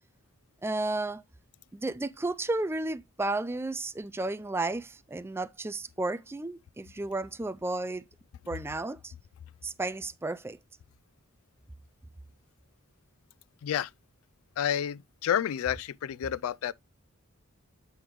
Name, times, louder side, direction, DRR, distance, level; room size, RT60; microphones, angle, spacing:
voice 1, 0.6-1.2 1.7-8.0 8.5-9.1 9.6-10.6, right 2 dB, 10° right, 0.3 m, -33 dB
voice 2, 14.6-16.7, left 9 dB, 85° left, 0.3 m, -30 dB
7.9 x 4.9 x 3.0 m
head